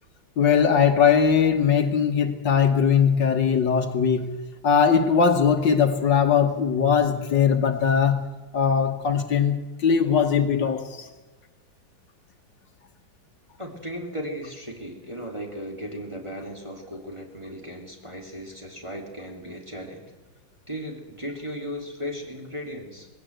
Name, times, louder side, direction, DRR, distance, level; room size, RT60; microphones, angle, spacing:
voice 1, 0.4-11.1, left 7 dB, 65° left, 1.8 m, -20 dB
voice 2, 13.6-20.1 20.7-23.1, equal, 15° right, 2.8 m, -36 dB
19.5 x 16.5 x 8.0 m
omnidirectional pair, 2.2 m